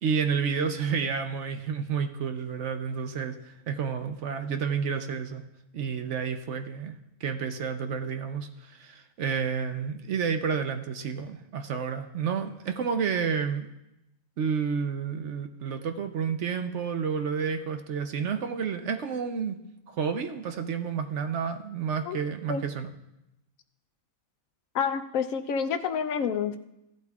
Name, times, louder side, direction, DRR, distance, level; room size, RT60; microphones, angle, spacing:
voice 1, 0.0-5.4 5.7-6.9 7.2-13.7 14.4-19.6 19.9-22.9, right 6 dB, 60° right, 7 dB, 0.9 m, -30 dB
voice 2, 24.7-26.6, left 6 dB, 75° left, 8 dB, 1.0 m, -28 dB
15.5 x 11.5 x 2.4 m, 0.88 s
omnidirectional pair, 1.5 m